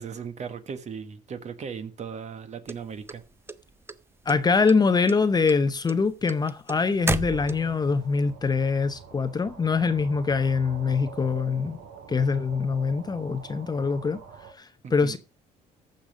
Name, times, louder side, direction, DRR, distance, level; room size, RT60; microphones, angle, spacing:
voice 1, 0.0-3.2 14.8-15.2, right 6 dB, 40° right, 1.3 m, -37 dB
sound 1, 2.7-3.9 4.3-4.8 5.1-7.9, right 3 dB, 15° right, 0.5 m, -31 dB
voice 2, 4.3-11.8 12.1-14.2 14.6-15.2, left 4 dB, 25° left, 0.7 m, -24 dB
sound 2, 7.3-14.5, right 6 dB, 70° right, 2.5 m, -45 dB
14.5 x 5.4 x 5.2 m
cardioid pair, 110°, 17 cm